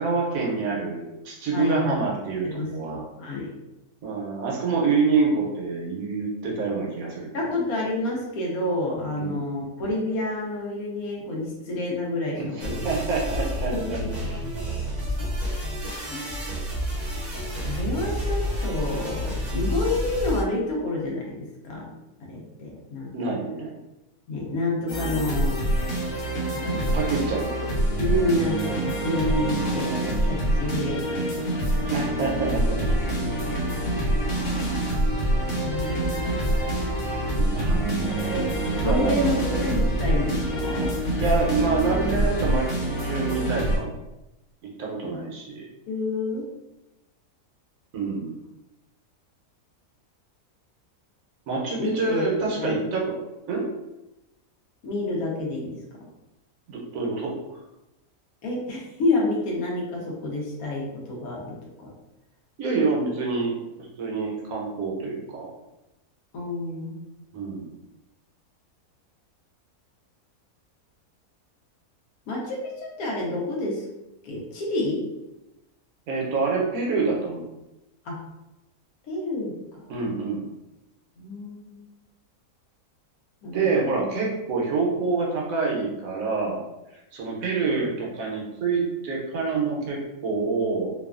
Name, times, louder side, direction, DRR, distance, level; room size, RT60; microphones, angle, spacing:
voice 1, 0.0-3.0 4.0-7.3 9.2-9.5 12.4-14.0 15.2-15.4 23.1-23.8 26.9-28.0 31.9-32.9 34.3-34.6 37.4-38.5 38.8-39.5 41.2-44.0 44.6-45.7 47.9-48.4 51.5-53.2 53.5-53.7 56.7-57.6 62.6-65.5 67.3-67.8 76.1-77.5 79.9-80.4 83.5-86.6 87.1-90.9, right 4 dB, 70° right, -2 dB, 1.0 m, -27 dB
voice 2, 1.5-2.0 2.4-3.5 7.3-12.8 13.7-14.3 16.1-16.6 17.6-21.9 22.2-23.1 24.3-25.6 26.5-27.0 28.0-31.9 35.5-36.2 38.8-40.9 45.0-45.2 45.9-46.5 51.8-52.3 52.5-52.9 54.8-55.8 58.4-61.9 66.3-67.2 72.3-73.9 74.2-75.1 78.0-78.2 79.1-79.5 81.2-81.8 83.4-84.2 87.7-87.8, left 2 dB, 70° left, -2 dB, 1.1 m, -29 dB
sound 1, 12.6-20.4, equal, 40° right, 0.6 m, -29 dB
sound 2, 24.9-43.8, right 1 dB, 90° left, 1.4 m, -26 dB
sound 3, 32.2-42.4, equal, 90° right, 0.4 m, -32 dB
2.9 x 2.3 x 2.3 m, 0.95 s
omnidirectional pair, 1.6 m